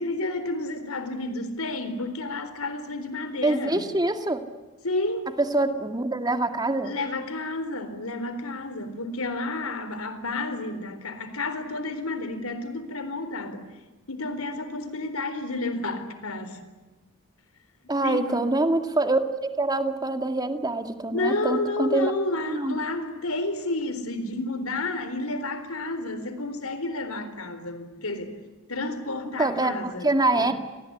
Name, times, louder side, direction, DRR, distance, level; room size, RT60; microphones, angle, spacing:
voice 1, 0.0-3.8 4.8-5.3 6.8-13.6 14.1-16.6 18.0-18.4 21.1-28.4 28.7-30.5, left 2 dB, 80° left, 11 dB, 4.0 m, -31 dB
voice 2, 3.4-4.4 5.4-6.9 17.9-19.2 19.6-22.1 22.5-22.8 29.4-30.5, right 2 dB, 20° right, 7 dB, 2.1 m, -25 dB
28.0 x 20.0 x 10.0 m, 1.2 s
head